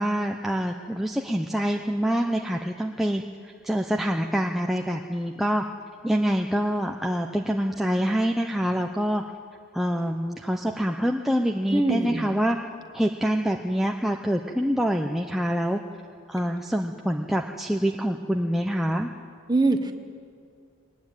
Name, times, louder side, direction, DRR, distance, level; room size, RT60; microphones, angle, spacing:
voice 1, 0.0-5.6 6.0-9.2 9.7-12.6 12.9-15.8 16.3-19.1, equal, ahead, 2 dB, 0.6 m, -26 dB
voice 2, 11.7-12.3 19.5-19.9, right 2 dB, 20° right, 7 dB, 1.1 m, -22 dB
21.5 x 19.5 x 9.0 m, 2.2 s
head